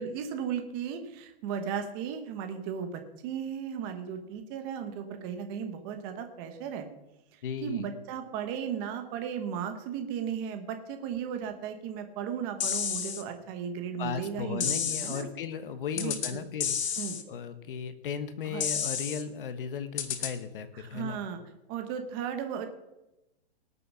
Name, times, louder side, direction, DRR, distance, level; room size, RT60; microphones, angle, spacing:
voice 1, 0.0-6.8 7.3-15.3 16.0-16.4 17.0-17.2 18.5-18.6 20.7-21.4 21.7-22.7, right 8 dB, 20° right, 6 dB, 1.1 m, -35 dB
voice 2, 7.4-7.9 14.0-17.0 17.3-21.2, left 7 dB, 50° left, 11 dB, 1.4 m, -36 dB
sound 1, 12.6-13.2 14.6-15.2 16.0-16.3 16.6-17.2 18.6-19.2 20.0-20.3, left 7 dB, 75° left, 1.7 m, -31 dB
18.5 x 6.9 x 6.2 m, 0.96 s
hypercardioid pair, 175°, 34 cm